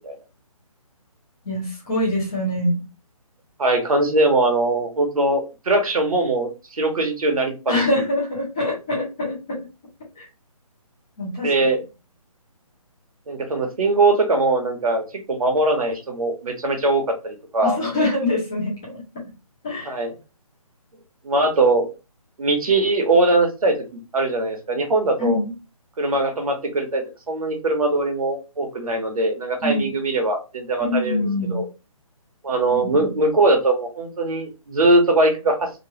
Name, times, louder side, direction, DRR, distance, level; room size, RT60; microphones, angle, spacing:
voice 1, 1.4-2.8 7.7-9.6 10.2-10.3 11.2-11.5 17.6-19.3 19.6-19.9 25.2-25.5 29.6-29.9 30.8-31.6 32.7-33.1, left 1 dB, 5° left, -7 dB, 0.5 m, -24 dB
voice 2, 3.6-7.8 11.4-11.8 13.3-17.8 19.8-20.1 21.2-21.9 22.4-25.4 26.0-31.6 32.4-35.7, right 2 dB, 70° right, 4 dB, 1.1 m, -21 dB
3.0 x 2.3 x 2.8 m, 0.29 s
hypercardioid pair, 175°, 19 cm